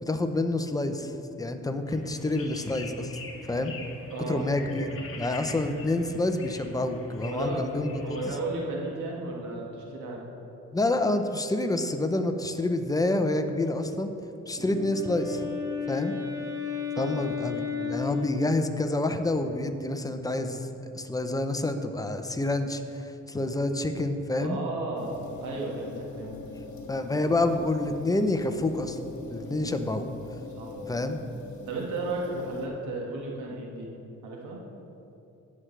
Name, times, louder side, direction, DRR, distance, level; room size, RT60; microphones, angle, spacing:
voice 1, 0.0-3.1 3.5-3.7 4.3-4.9 5.2-7.9 10.7-14.1 14.5-15.5 15.9-16.2 17.0-24.6 26.9-29.0 29.3-30.1 30.8-31.2, left 2 dB, 10° left, 7 dB, 0.7 m, -28 dB
sound 1, 1.9-8.4, left 3 dB, 45° left, 1.4 m, -44 dB
voice 2, 4.1-4.5 7.2-7.7 8.0-10.2 14.6-14.8 16.9-17.2 24.4-25.1 25.4-26.4 29.4-29.9 30.6-30.7 31.7-33.9 34.2-34.6, right 2 dB, 85° right, -2 dB, 1.8 m, -34 dB
Wind instrument woodwind instrument, 14.4-19.0, left 6 dB, 10° right, 1.5 m, -34 dB
sound 2, 24.9-32.7, left 3 dB, 65° left, 1.6 m, -43 dB
16.5 x 6.3 x 3.3 m, 2.8 s
cardioid pair, 90°, 30 cm